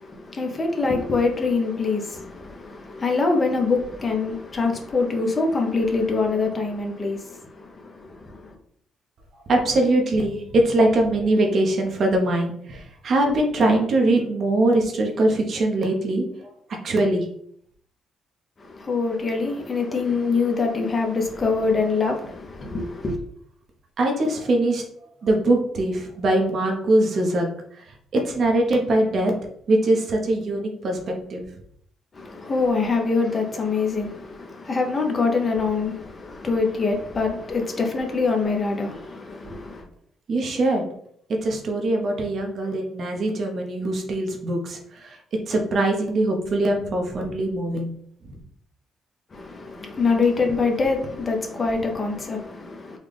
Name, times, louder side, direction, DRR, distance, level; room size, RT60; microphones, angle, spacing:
voice 1, 0.0-8.6 18.6-23.2 32.1-39.8 49.3-53.0, left 4 dB, 35° left, 0.9 m, -24 dB
voice 2, 9.5-16.2 16.8-17.3 24.0-24.8 25.2-27.5 27.7-29.3 29.7-31.5 40.3-40.9 41.4-45.2 45.5-47.9 48.2-48.3, right 1 dB, 55° right, 0.8 m, -22 dB
4.0 x 2.4 x 3.4 m
cardioid pair, 90°, 0 cm